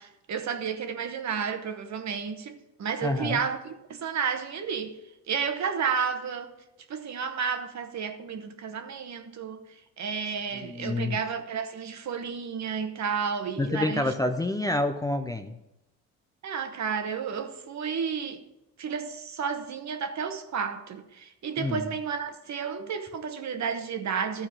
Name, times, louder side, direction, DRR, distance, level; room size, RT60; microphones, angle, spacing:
voice 1, 0.0-4.9 5.3-6.5 6.9-9.6 10.0-14.1 16.4-18.4 18.8-24.5, right 6 dB, 45° right, 1.1 m, -32 dB
voice 2, 3.0-3.4 10.5-11.2 13.6-15.6 21.6-21.9, left 2 dB, 10° left, 0.5 m, -28 dB
13.0 x 4.6 x 5.7 m
supercardioid pair, 85°, 38 cm